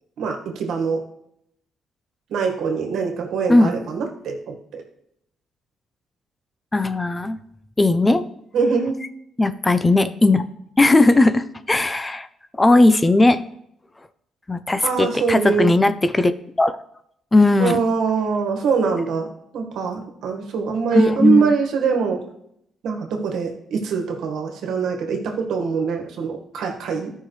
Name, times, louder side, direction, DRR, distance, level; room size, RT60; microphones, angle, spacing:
voice 1, 0.2-1.0 2.3-4.8 8.5-9.0 14.8-15.7 17.6-19.3 19.5-22.2 22.8-27.1, right 5 dB, 75° right, 3 dB, 1.6 m, -23 dB
voice 2, 6.7-7.4 7.8-8.2 9.4-10.4 10.8-12.3 12.6-13.4 14.5-16.3 16.6-16.7 17.3-17.8 20.9-21.5, left 2 dB, 20° left, 12 dB, 0.5 m, -17 dB
13.5 x 5.6 x 3.3 m, 0.74 s
cardioid pair, 90°, 0 cm